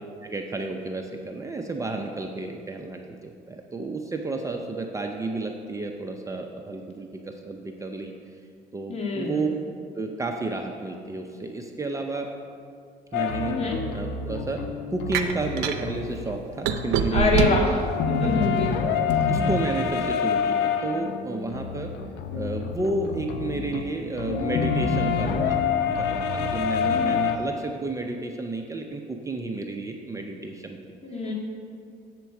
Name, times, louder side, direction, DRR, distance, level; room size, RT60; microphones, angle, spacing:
voice 1, 0.2-8.1 8.7-9.5 9.9-12.3 13.1-17.6 18.2-18.3 18.9-21.9 22.3-30.8, right 3 dB, 20° right, 3 dB, 0.5 m, -31 dB
voice 2, 8.9-9.4 13.6-13.8 17.1-17.8 18.1-18.7 31.0-31.3, left 4 dB, 40° left, -2 dB, 1.6 m, -25 dB
sound 1, 13.1-16.4 16.7-27.4, left 6 dB, 90° left, 0.6 m, -27 dB
Bottles clinking, 15.1-15.8 16.7-17.7 18.3-19.2, right 8 dB, 85° right, 0.5 m, -24 dB
7.2 x 4.5 x 6.9 m, 2.3 s
cardioid pair, 110°, 17 cm